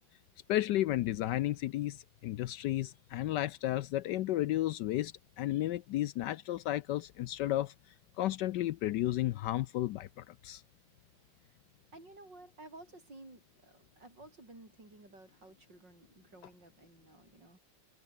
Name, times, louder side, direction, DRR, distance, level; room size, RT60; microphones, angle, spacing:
voice 1, 0.5-7.7 8.2-10.6, left 14 dB, 70° left, 1.1 m, -33 dB
voice 2, 11.9-17.6, right 2 dB, 60° right, 8.1 m, -54 dB
omnidirectional pair, 2.2 m